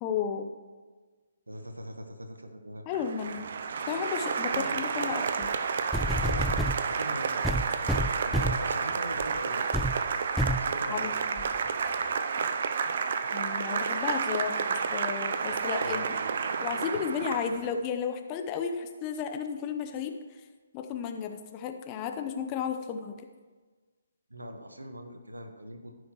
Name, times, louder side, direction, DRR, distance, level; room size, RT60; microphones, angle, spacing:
voice 1, 0.0-0.5 2.9-3.4 3.9-5.5 10.9-11.5 13.3-14.5 14.9-16.1 16.6-20.4 20.7-23.3, left 7 dB, 25° left, 6 dB, 0.8 m, -33 dB
voice 2, 1.5-2.8 4.5-4.9 6.2-9.7 10.6-11.2 15.8-16.1 24.3-26.0, right 1 dB, 90° right, 6 dB, 1.1 m, -41 dB
Applause, 2.9-17.7, right 5 dB, 50° right, 0.5 m, -30 dB
sound 1, 5.4-5.5 5.9-6.8 7.4-8.7 9.2-9.4 9.7-10.0 10.4-10.7 11.4-11.5, equal, ahead, 0.3 m, -29 dB
14.5 x 6.2 x 3.1 m, 1.4 s
figure-of-eight pair, 140°, 0 cm